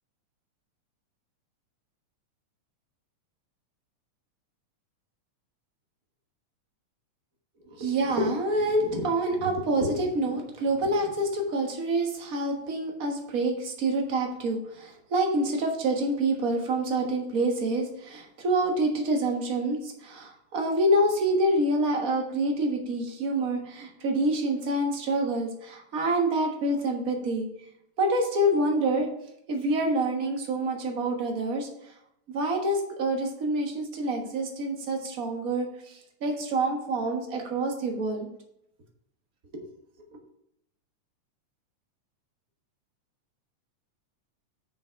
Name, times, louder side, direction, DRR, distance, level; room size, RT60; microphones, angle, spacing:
voice 1, 7.8-27.5 28.0-29.1 29.5-31.9 32.3-38.3 39.5-39.7, right 1 dB, 45° right, 2 dB, 1.1 m, -27 dB
7.2 x 6.1 x 4.5 m, 0.76 s
omnidirectional pair, 3.5 m